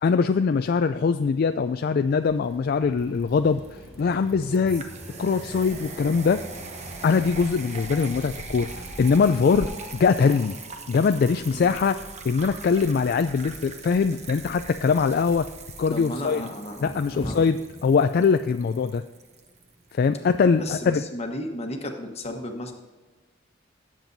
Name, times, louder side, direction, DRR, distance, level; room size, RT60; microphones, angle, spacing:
voice 1, 0.0-3.6 4.0-4.8 5.2-6.4 7.0-10.6 10.9-15.5 15.8-16.4 16.8-17.6 17.8-19.0 19.9-21.0, left 5 dB, 50° left, 9 dB, 0.3 m, -22 dB
sound 1, 2.2-16.0, equal, 10° right, 2.9 m, -44 dB
sound 2, 2.5-20.5, right 4 dB, 35° right, 0.9 m, -43 dB
voice 2, 15.9-17.5 20.6-22.7, left 1 dB, 35° left, 3 dB, 1.2 m, -33 dB
17.5 x 7.5 x 2.7 m, 1.3 s
head